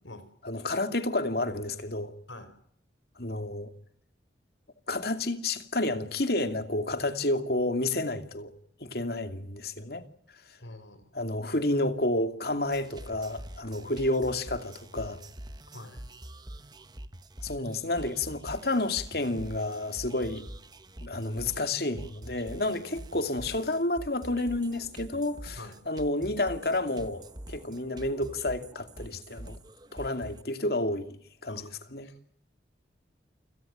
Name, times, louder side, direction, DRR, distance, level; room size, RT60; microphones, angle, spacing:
voice 1, 0.4-2.1 3.2-3.7 4.9-8.5 8.8-10.0 11.1-15.2 17.4-20.4 21.0-25.6 25.9-27.2 27.5-29.6 29.9-31.2 31.4-32.1, left 2 dB, 55° left, 2.5 m, -30 dB
voice 2, 10.6-11.1 15.7-16.1 25.6-25.9 31.5-31.7 32.0-32.2, left 2 dB, 90° left, 4.8 m, -46 dB
sound 1, 12.6-30.4, right 1 dB, 20° right, 1.3 m, -45 dB
29.0 x 17.5 x 9.3 m
head